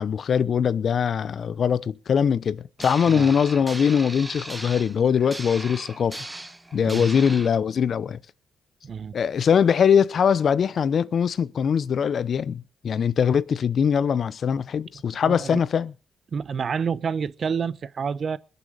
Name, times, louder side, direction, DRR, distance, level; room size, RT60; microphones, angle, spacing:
voice 1, 0.0-6.2 6.7-8.2 9.1-15.9, left 7 dB, 55° left, 0.8 m, -22 dB
sound 1, 2.8-7.5, right 2 dB, 10° right, 1.2 m, -38 dB
voice 2, 8.8-9.2 15.2-15.6 16.3-18.4, right 6 dB, 45° right, 0.9 m, -28 dB
21.0 x 7.2 x 6.5 m
cardioid pair, 90°, 0 cm